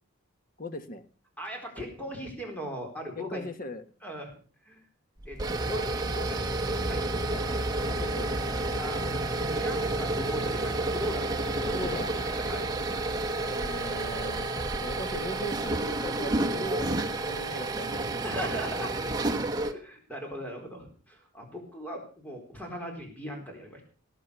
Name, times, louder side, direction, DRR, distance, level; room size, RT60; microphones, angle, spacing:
voice 1, 0.6-1.0 3.1-3.8 5.6-6.3 7.3-7.4 7.9-8.4 11.7-12.1 13.4-14.5 14.8-18.0, left 1 dB, 40° left, 10 dB, 1.5 m, -39 dB
voice 2, 1.4-3.5 4.0-4.4 4.6-4.8 5.3-5.8 6.2-6.4 6.8-7.1 8.8-9.2 9.5-12.7 18.2-19.1 19.6-23.8, equal, 10° left, 2 dB, 4.1 m, -39 dB
sound 1, 5.2-19.7, right 2 dB, 20° right, 1.2 m, -30 dB
18.5 x 8.4 x 6.9 m, 0.40 s
head